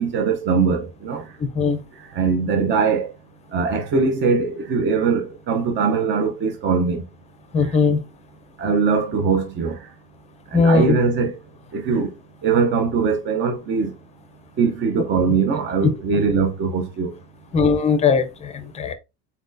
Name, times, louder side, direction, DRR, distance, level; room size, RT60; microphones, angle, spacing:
voice 1, 0.0-1.3 2.1-3.1 3.5-7.0 7.6-7.7 8.6-9.9 10.5-11.4 11.7-12.1 12.4-13.9 14.6-17.1, right 5 dB, 35° right, 0.7 m, -21 dB
voice 2, 1.4-1.8 7.5-8.0 10.5-11.0 17.5-18.9, left 4 dB, 20° left, 0.6 m, -19 dB
4.2 x 4.1 x 2.6 m
cardioid pair, 155°, 32 cm